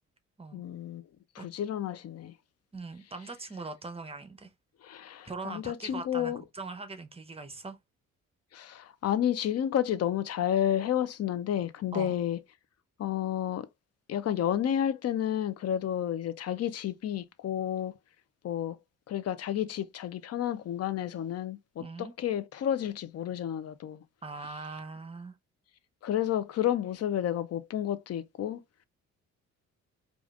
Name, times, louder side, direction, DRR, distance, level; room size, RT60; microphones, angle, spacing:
voice 1, 0.5-1.0 1.3-2.3 4.8-6.4 8.5-12.4 13.0-13.7 14.1-17.9 18.4-18.8 19.1-24.0 26.0-28.6, left 10 dB, 55° left, 0.6 m, -31 dB
voice 2, 2.7-4.5 5.2-7.8 11.9-12.1 21.8-22.1 24.2-25.3, right 3 dB, 20° right, 0.8 m, -41 dB
4.9 x 2.5 x 2.4 m
cardioid pair, 90°, 30 cm